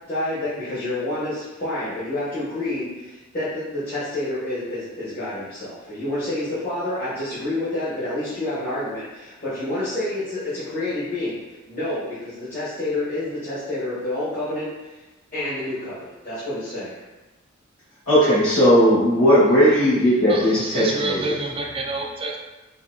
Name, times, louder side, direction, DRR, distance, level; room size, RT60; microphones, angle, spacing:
voice 1, 0.1-11.4 11.7-15.0 15.3-16.9, left 1 dB, 40° left, -12 dB, 1.0 m, -28 dB
voice 2, 18.1-21.3, equal, 70° left, -10 dB, 1.2 m, -17 dB
voice 3, 20.3-22.4, right 2 dB, 25° right, 1 dB, 0.4 m, -28 dB
4.1 x 2.2 x 2.4 m, 1.1 s
head